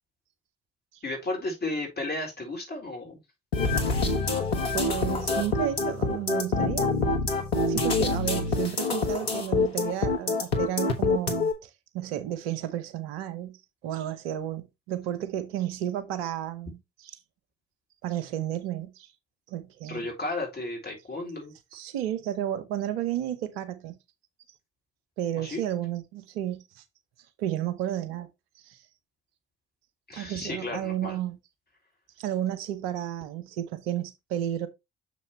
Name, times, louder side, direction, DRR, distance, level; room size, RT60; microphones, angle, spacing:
voice 1, 1.0-3.2 19.9-21.5 25.4-25.6 30.1-31.2, left 2 dB, 35° left, 3.9 m, -33 dB
sound 1, 3.5-11.5, left 3 dB, 90° left, 1.3 m, -26 dB
voice 2, 4.7-6.9 7.7-13.6 13.8-17.1 18.0-19.1 19.5-20.1 21.7-24.0 25.2-26.8 27.4-28.3 28.6-28.8 30.1-31.4 32.2-34.7, right 11 dB, 80° right, 0.9 m, -32 dB
6.9 x 6.3 x 3.1 m
hypercardioid pair, 45°, 30 cm